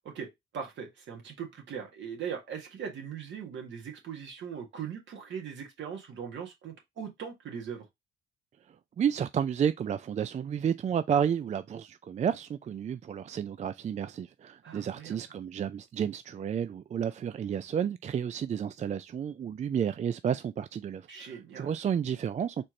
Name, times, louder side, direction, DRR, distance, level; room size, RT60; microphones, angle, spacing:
voice 1, 0.0-7.9 14.6-15.2 21.1-21.7, right 7 dB, 70° right, 1.7 m, -40 dB
voice 2, 9.0-22.6, right 8 dB, 35° right, 0.4 m, -31 dB
4.3 x 3.2 x 3.7 m
cardioid pair, 90°, 20 cm